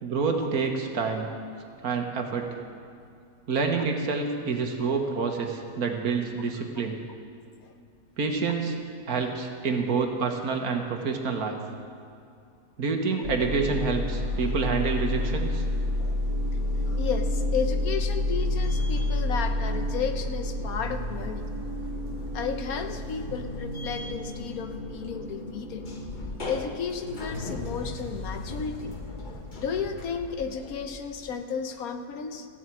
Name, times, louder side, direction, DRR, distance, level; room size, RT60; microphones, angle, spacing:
voice 1, 0.0-1.3 1.8-2.6 3.5-7.0 8.2-8.8 9.1-11.6 12.8-15.6, right 4 dB, 65° right, 3 dB, 1.7 m, -27 dB
sound 1, 13.2-31.3, left 1 dB, 30° left, 1.2 m, -30 dB
voice 2, 16.8-21.5 22.3-25.9 26.4-28.9 29.6-32.5, left 6 dB, 65° left, 8 dB, 1.2 m, -33 dB
14.5 x 7.7 x 8.6 m, 2.4 s
omnidirectional pair, 1.7 m